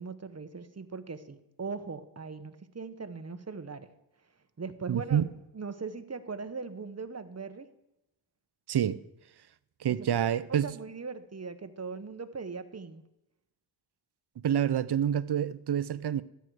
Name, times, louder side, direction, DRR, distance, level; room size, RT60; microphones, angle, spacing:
voice 1, 0.0-3.9 4.6-5.2 5.5-7.7 9.9-13.0, right 4 dB, 30° right, 1.1 m, -40 dB
voice 2, 4.9-5.3 8.7-9.0 9.8-10.7 14.4-16.2, right 9 dB, 55° right, 0.6 m, -27 dB
13.0 x 9.3 x 4.8 m
cardioid pair, 55°, 49 cm